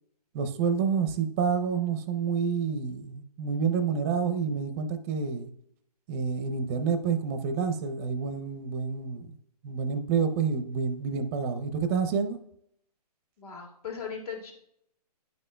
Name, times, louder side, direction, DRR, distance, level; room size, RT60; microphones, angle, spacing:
voice 1, 0.3-5.5 6.1-9.3 9.6-12.4, right 6 dB, 20° right, 9 dB, 0.5 m, -28 dB
voice 2, 13.4-14.5, left 6 dB, 65° left, 1 dB, 2.2 m, -38 dB
10.5 x 5.5 x 2.2 m, 0.73 s
hypercardioid pair, 150°, 21 cm